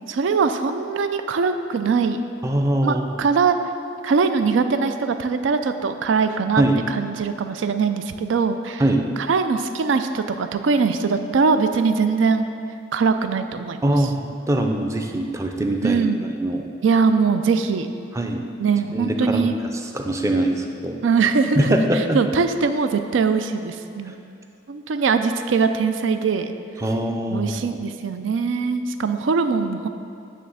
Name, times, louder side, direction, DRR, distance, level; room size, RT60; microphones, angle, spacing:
voice 1, 0.1-2.2 2.8-3.6 4.0-8.8 9.2-12.5 12.9-14.1 15.8-16.3 16.8-17.9 18.6-19.5 21.0-24.2 24.7-26.5 27.3-29.9, right 5 dB, 80° right, 9 dB, 0.4 m, -22 dB
voice 2, 2.4-3.1 6.6-6.8 8.8-9.1 13.8-14.1 14.5-16.0 16.4-16.6 18.2-18.4 18.9-19.5 19.9-21.0 21.6-22.2 26.8-27.8, right 1 dB, 15° right, 3 dB, 0.5 m, -22 dB
9.4 x 3.3 x 6.3 m, 2.6 s
head